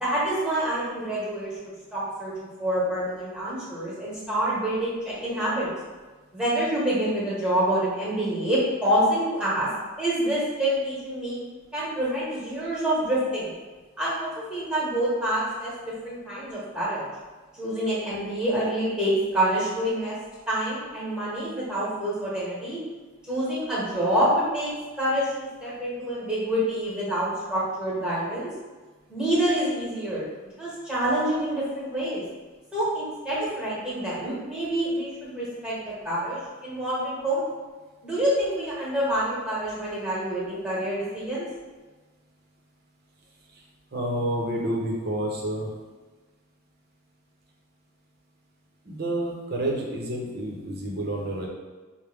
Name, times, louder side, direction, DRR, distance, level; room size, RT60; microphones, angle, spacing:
voice 1, 0.0-5.7 6.3-9.7 10.0-11.4 11.7-13.5 14.0-15.7 16.0-17.1 17.5-20.1 20.5-22.8 23.3-24.7 25.0-25.3 25.6-28.5 29.1-30.2 30.6-32.2 32.7-37.4 38.0-41.4, right 1 dB, 5° right, -8 dB, 1.2 m, -27 dB
voice 2, 43.9-45.7 48.9-51.5, right 1 dB, 45° right, -1 dB, 0.7 m, -29 dB
5.9 x 2.1 x 3.4 m, 1.3 s
head